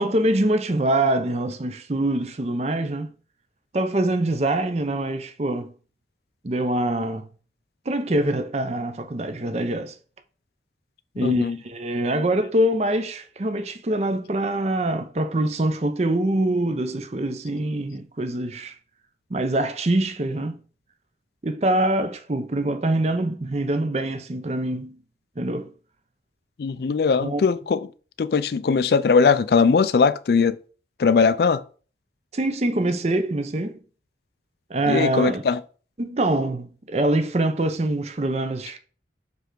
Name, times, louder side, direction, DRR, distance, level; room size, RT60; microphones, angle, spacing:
voice 1, 0.0-3.1 3.7-5.7 6.4-7.3 7.9-10.0 11.2-18.7 19.3-20.6 21.4-25.0 25.4-25.7 27.2-27.4 32.3-33.8 34.7-35.4 36.0-38.8, right 1 dB, 35° right, 0.6 m, -24 dB
voice 2, 11.2-11.6 26.6-27.9 28.2-30.6 31.0-31.6 34.9-35.6, left 5 dB, 60° left, 0.4 m, -20 dB
6.9 x 3.3 x 4.6 m
head